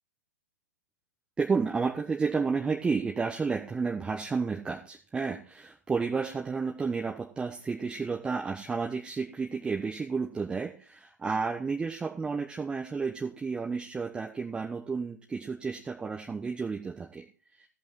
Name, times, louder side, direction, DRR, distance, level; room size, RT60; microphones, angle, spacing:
voice 1, 1.4-17.2, right 5 dB, 10° right, -1 dB, 1.3 m, -31 dB
15.0 x 5.5 x 5.6 m, 0.37 s
figure-of-eight pair, 120°, 9 cm